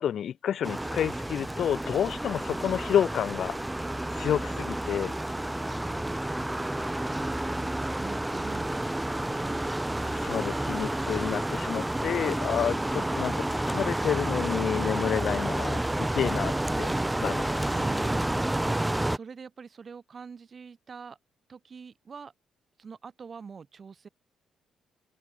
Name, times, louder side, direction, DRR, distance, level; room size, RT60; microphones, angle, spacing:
voice 1, 0.0-3.6 4.1-5.1 10.1-13.3 13.7-16.9 17.2-17.7, left 9 dB, 65° left, 0.6 m, -29 dB
sound 1, 0.6-19.2, right 1 dB, 10° right, 0.7 m, -30 dB
voice 2, 4.4-5.2 5.9-9.8 12.8-13.2 17.7-18.3 18.6-21.2 21.5-22.3 22.8-24.1, right 5 dB, 40° right, 2.1 m, -46 dB
open air
cardioid pair, 90°, 0 cm